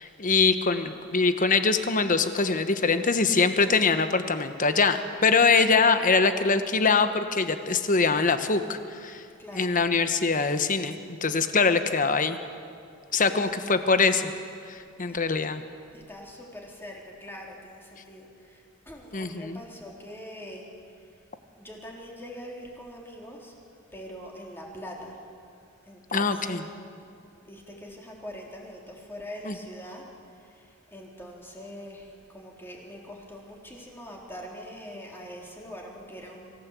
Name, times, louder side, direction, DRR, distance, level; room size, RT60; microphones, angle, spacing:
voice 1, 0.0-9.2 9.5-12.4 13.1-14.3 14.6-15.6 19.1-19.6 26.1-26.6 29.5-29.6, left 4 dB, 40° left, 9 dB, 1.2 m, -23 dB
voice 2, 9.4-9.7 13.1-13.5 15.1-15.2 15.9-21.2 21.6-23.5 23.9-25.2 25.9-36.5, equal, 10° left, -2 dB, 3.7 m, -43 dB
25.0 x 16.0 x 8.4 m, 2.4 s
head